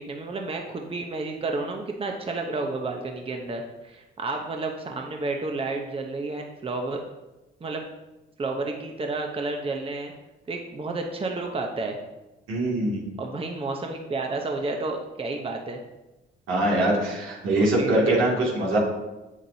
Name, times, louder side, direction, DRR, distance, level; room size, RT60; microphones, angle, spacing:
voice 1, 0.0-7.0 7.6-7.8 8.4-10.1 10.5-12.0 13.2-15.8 17.6-18.2, right 3 dB, 30° right, 2 dB, 0.8 m, -31 dB
voice 2, 12.5-13.0 16.5-18.8, right 1 dB, 85° right, -3 dB, 2.4 m, -23 dB
7.9 x 7.2 x 2.8 m, 1.0 s
cardioid pair, 90°, 20 cm